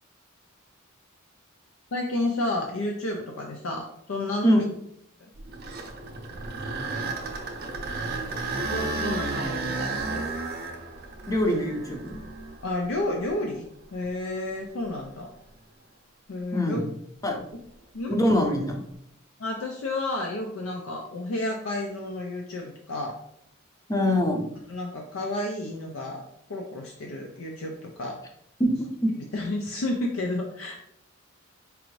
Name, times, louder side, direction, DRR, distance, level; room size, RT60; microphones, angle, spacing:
voice 1, 1.9-4.7 8.7-10.3 12.6-15.3 16.3-16.8 17.2-17.6 17.9-18.2 19.4-23.2 24.7-26.2 26.5-28.2 29.3-30.8, left 2 dB, 80° left, 1 dB, 0.5 m, -31 dB
sound 1, 5.4-13.4 14.0-14.1 14.8-15.0 18.5-18.9, right 3 dB, 50° right, 0.5 m, -33 dB
voice 2, 11.3-12.2 16.5-16.8 17.2-17.4 18.1-18.8 23.9-24.4 28.6-28.7 29.0-29.1, equal, 15° left, 2 dB, 0.6 m, -23 dB
4.6 x 2.5 x 3.1 m, 0.73 s
head